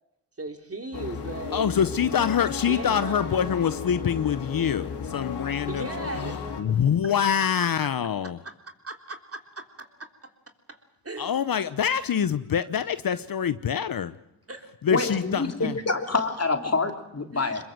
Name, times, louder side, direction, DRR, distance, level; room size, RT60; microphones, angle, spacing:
voice 1, 0.4-1.7 2.7-3.4 5.7-7.3 8.8-10.1 10.7-11.5 14.5-14.7 17.3-17.6, right 3 dB, 35° right, 4 dB, 3.5 m, -38 dB
sound 1, 0.9-6.6, left 6 dB, 75° left, 3.2 m, -34 dB
voice 2, 1.5-5.9 6.2-8.4 11.2-14.1 14.8-15.7, left 8 dB, 55° left, 13 dB, 0.9 m, -25 dB
voice 3, 14.9-17.6, left 3 dB, 35° left, 5 dB, 3.3 m, -26 dB
22.5 x 21.5 x 7.8 m, 0.91 s
supercardioid pair, 50°, 40 cm